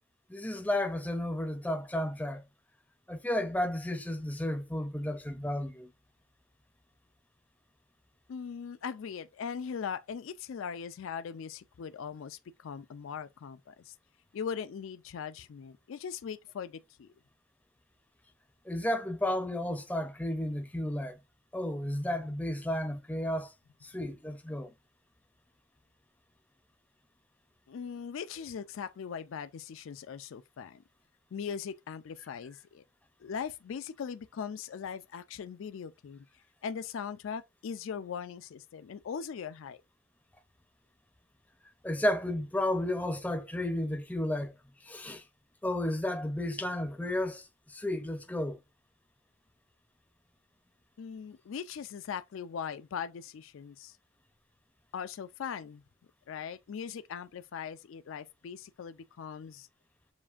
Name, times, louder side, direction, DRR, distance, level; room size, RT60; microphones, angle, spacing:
voice 1, 0.3-2.4 3.1-5.9 18.7-21.1 21.5-23.5 23.8-24.7 41.8-44.5 44.8-45.2 45.6-48.6, left 1 dB, 5° left, 0.5 m, -32 dB
voice 2, 8.3-13.9 14.3-17.1 27.7-30.8 31.3-32.8 33.2-36.3 36.6-39.8 51.0-54.0 54.9-55.8 56.3-59.7, left 7 dB, 70° left, 0.4 m, -40 dB
7.1 x 2.5 x 2.4 m
head